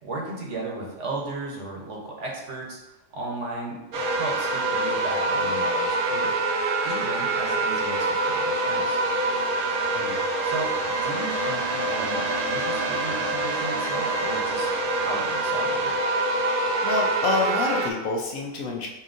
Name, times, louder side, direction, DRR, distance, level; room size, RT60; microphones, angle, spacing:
voice 1, 0.0-2.8 3.1-6.3 6.8-9.0 10.4-15.9, right 2 dB, 60° right, -2 dB, 1.1 m, -35 dB
sound 1, 3.9-17.9, right 2 dB, 80° right, 0.4 m, -25 dB
voice 2, 16.8-18.9, left 3 dB, 70° left, 0 dB, 1.1 m, -27 dB
5.4 x 2.7 x 2.5 m, 1.0 s
omnidirectional pair, 1.5 m